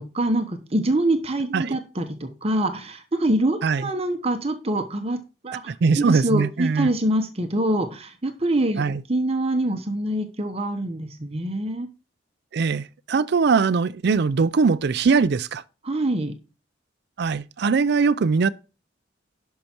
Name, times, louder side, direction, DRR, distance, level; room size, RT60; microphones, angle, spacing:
voice 1, 0.0-5.2 5.4-11.9 15.8-16.4, right 1 dB, 30° right, 1.0 m, -25 dB
voice 2, 5.7-6.9 8.8-9.0 12.5-15.6 17.2-18.5, right 5 dB, 60° right, 0.4 m, -21 dB
11.5 x 5.7 x 4.4 m
head